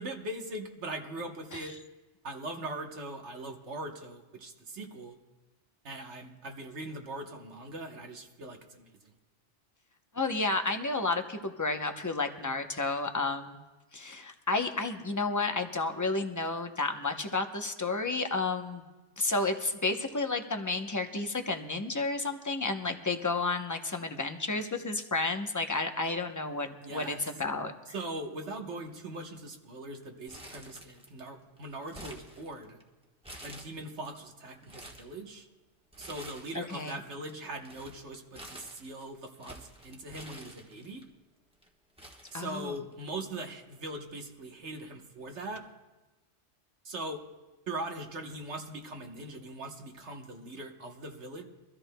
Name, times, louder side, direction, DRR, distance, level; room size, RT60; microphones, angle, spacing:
voice 1, 0.0-1.8 2.2-5.2 5.8-8.9 26.8-27.2 27.9-32.8 33.4-35.5 36.0-41.0 42.3-45.6 46.8-47.2 47.7-51.5, right 2 dB, 65° right, 3 dB, 1.4 m, -41 dB
voice 2, 10.1-13.6 13.9-18.8 19.2-27.7 36.5-37.0 42.3-42.8, left 3 dB, 20° left, 5 dB, 0.6 m, -31 dB
Crumpling crinkling, 30.3-31.3 31.6-32.8 33.2-34.1 34.5-35.1 35.9-36.7 37.0-41.0 41.6-41.7 42.0-43.0 43.3-43.4 44.4-44.6, right 1 dB, 5° right, 1.2 m, -49 dB
24.0 x 13.5 x 2.2 m, 1.1 s
omnidirectional pair, 1.3 m